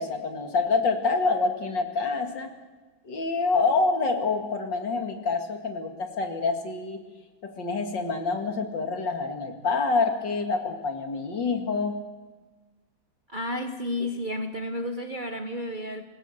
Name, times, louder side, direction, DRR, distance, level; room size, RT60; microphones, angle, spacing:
voice 1, 0.0-2.5 3.1-7.0 7.4-12.0, left 4 dB, 65° left, 2.8 m, -27 dB
voice 2, 13.3-16.0, left 1 dB, 35° right, 0.8 m, -31 dB
26.0 x 16.0 x 6.6 m
omnidirectional pair, 2.1 m